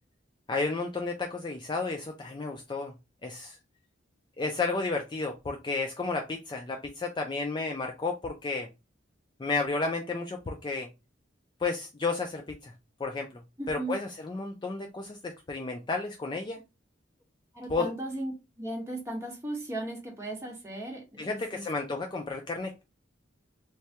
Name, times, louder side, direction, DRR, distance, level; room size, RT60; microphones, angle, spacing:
voice 1, 0.5-2.9 3.2-3.6 4.4-8.7 9.4-10.9 11.6-12.7 13.0-13.4 13.7-16.6 17.7-17.9 21.2-22.8, left 3 dB, 25° left, 0.3 m, -32 dB
voice 2, 13.6-13.9 17.5-18.3 18.6-21.6, right 1 dB, 15° right, 0.9 m, -36 dB
3.3 x 2.2 x 2.7 m
head